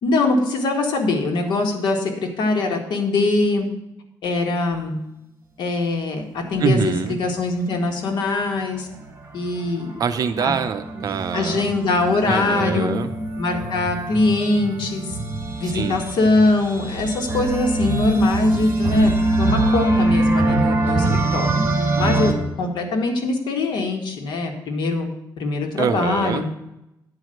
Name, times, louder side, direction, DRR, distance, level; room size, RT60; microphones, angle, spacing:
voice 1, 0.0-3.7 4.2-5.0 5.6-6.2 6.5-8.9 9.3-9.9 10.4-10.5 11.3-12.9 13.4-15.1 15.6-21.5 22.0-25.1 25.4-26.4, left 2 dB, 80° left, 2 dB, 1.8 m, -22 dB
voice 2, 6.6-7.2 10.0-11.6 12.2-13.1 15.6-16.0 25.8-26.4, right 6 dB, 55° right, 9 dB, 0.7 m, -24 dB
sound 1, 8.6-22.3, right 2 dB, 30° right, 1.8 m, -23 dB
9.7 x 4.9 x 7.8 m, 0.88 s
wide cardioid pair, 160°, 8 cm